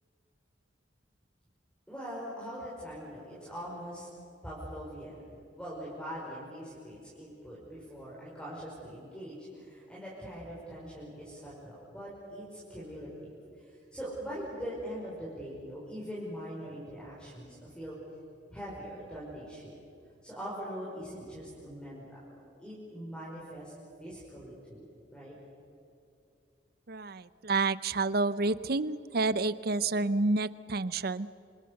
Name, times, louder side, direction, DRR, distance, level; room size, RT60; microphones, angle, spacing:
voice 1, 1.9-4.1 4.4-18.0 18.5-19.8 20.2-23.7 24.0-24.9 25.1-25.4, equal, 5° left, -7 dB, 5.8 m, -42 dB
voice 2, 26.9-31.3, right 3 dB, 55° right, 16 dB, 0.7 m, -29 dB
28.0 x 26.5 x 6.7 m, 2.6 s
head